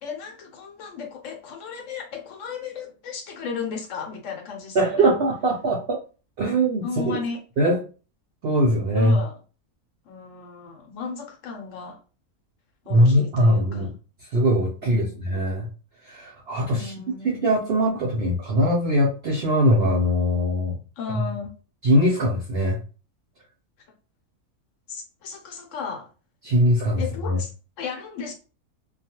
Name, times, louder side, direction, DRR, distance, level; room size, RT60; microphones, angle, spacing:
voice 1, 0.0-5.1 6.8-7.4 8.9-9.4 10.0-12.0 12.8-13.9 14.8-15.3 16.7-17.4 21.0-21.5 24.9-26.1 27.0-27.5 27.8-28.3, left 5 dB, 65° left, 0.9 m, -35 dB
voice 2, 4.7-6.0 6.4-7.2 7.6-7.8 8.4-9.2 12.9-13.9 14.3-15.7 16.1-16.9 17.2-20.8 21.8-22.8 26.4-27.0 27.3-27.4, equal, 80° right, 0.5 m, -21 dB
2.3 x 2.2 x 2.8 m
omnidirectional pair, 1.6 m